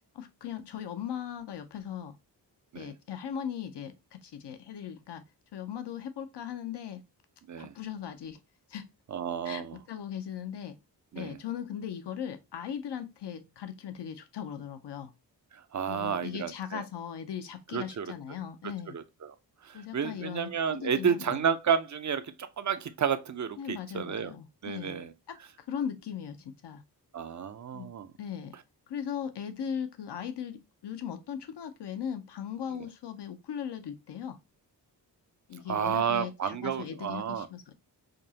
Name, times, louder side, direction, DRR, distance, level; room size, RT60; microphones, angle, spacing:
voice 1, 0.1-2.2 2.7-5.2 5.5-7.0 7.6-8.4 8.7-8.9 9.4-10.8 11.1-15.1 15.9-19.0 19.7-21.5 23.6-25.0 25.3-25.4 25.7-26.8 27.7-27.9 28.2-28.6 28.9-34.4 35.5-37.7, left 8 dB, 70° left, 0.8 m, -38 dB
voice 2, 9.1-9.8 11.1-11.4 15.5-16.8 17.7-18.1 18.9-19.3 19.6-24.3 24.6-25.1 27.1-28.1 32.7-32.9 35.7-37.5, right 7 dB, 45° right, 0.6 m, -31 dB
5.1 x 2.0 x 2.8 m
cardioid pair, 45°, 43 cm